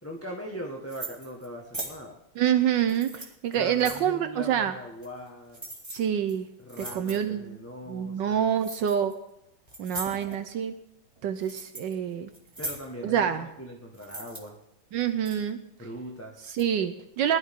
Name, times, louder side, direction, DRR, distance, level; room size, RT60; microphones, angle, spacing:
voice 1, 0.0-2.2 3.5-5.7 6.6-8.5 12.6-14.6 15.8-16.5, equal, 10° left, -1 dB, 1.2 m, -40 dB
sound 1, 0.9-1.5 1.7-2.0 2.8-4.1 5.0-5.3 5.5-6.0 6.3-6.4 6.7-7.2 8.6-9.1 9.7-10.4 11.1-11.9 12.3-12.8 13.9-14.4 15.0-15.5 16.4-16.6, right 2 dB, 15° right, 2.2 m, -39 dB
voice 2, 2.4-4.7 5.9-6.5 6.8-7.6 7.9-9.1 9.8-10.7 11.2-12.3 13.0-13.5 14.9-15.6 16.5-17.4, right 9 dB, 70° right, 10 dB, 1.3 m, -27 dB
20.0 x 12.5 x 3.7 m, 0.85 s
omnidirectional pair, 2.2 m